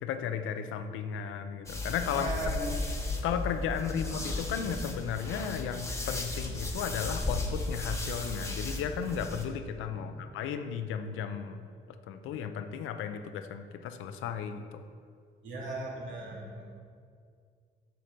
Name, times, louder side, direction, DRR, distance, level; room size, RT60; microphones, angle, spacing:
voice 1, 0.0-2.3 3.2-11.6 12.1-14.8, left 7 dB, 90° left, 8 dB, 0.6 m, -34 dB
sound 1, 1.7-9.5, left 2 dB, 15° left, 1.2 m, -35 dB
voice 2, 2.1-2.7 3.1-3.4 9.9-10.2 15.4-16.6, right 2 dB, 70° right, -3 dB, 2.2 m, -38 dB
7.6 x 6.7 x 5.2 m, 2.2 s
cardioid pair, 90°, 20 cm